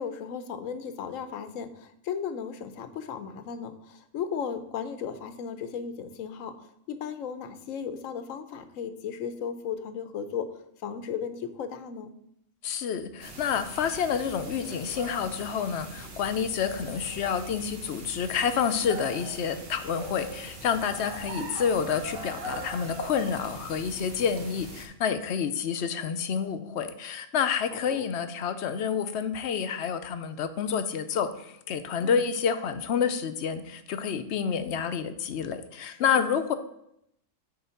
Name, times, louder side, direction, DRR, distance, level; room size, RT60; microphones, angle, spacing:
voice 1, 0.0-12.2 27.7-28.1 32.0-32.2 35.8-36.3, left 7 dB, 80° left, 10 dB, 1.1 m, -36 dB
voice 2, 12.6-36.5, left 7 dB, 65° left, 10 dB, 0.8 m, -29 dB
sound 1, 13.2-24.8, right 1 dB, 50° right, 1.6 m, -41 dB
8.6 x 3.7 x 5.7 m, 0.76 s
omnidirectional pair, 1.3 m